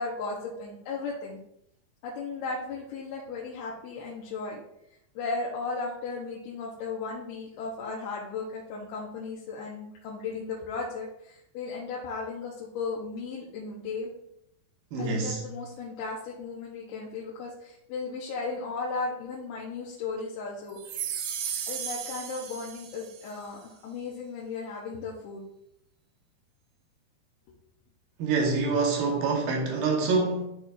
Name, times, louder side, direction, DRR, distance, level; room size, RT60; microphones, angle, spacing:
voice 1, 0.0-1.4 2.0-4.6 5.2-14.1 15.0-21.1 21.7-25.4, left 4 dB, 75° left, 2.8 m, -36 dB
voice 2, 14.9-15.4 28.2-30.4, right 4 dB, 70° right, 2.6 m, -26 dB
sound 1, 20.8-23.3, right 8 dB, 85° right, 3.0 m, -35 dB
12.5 x 4.2 x 2.4 m
omnidirectional pair, 4.7 m